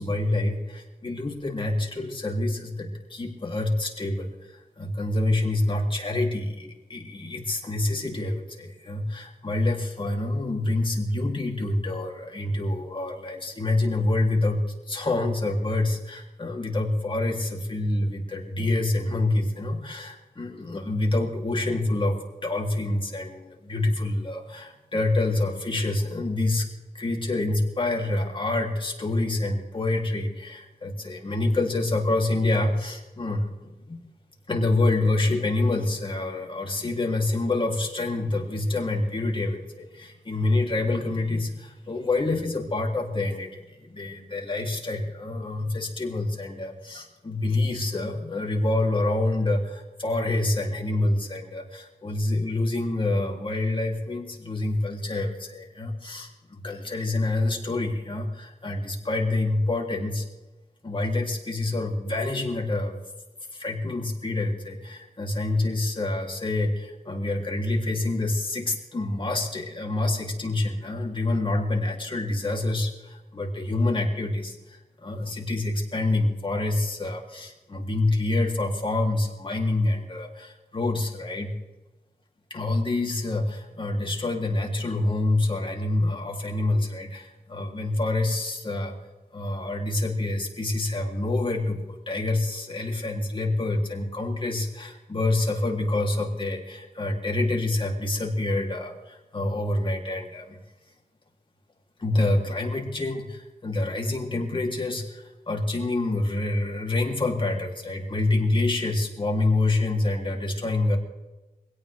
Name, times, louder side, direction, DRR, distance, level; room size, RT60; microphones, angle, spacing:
voice 1, 0.0-22.2 22.4-26.7 26.9-34.0 34.5-60.3 60.8-63.0 63.5-81.5 82.5-88.9 89.3-100.6 102.0-111.0, left 2 dB, 30° left, 0 dB, 3.2 m, -27 dB
24.0 x 17.0 x 3.5 m, 1.1 s
wide cardioid pair, 140°, 17 cm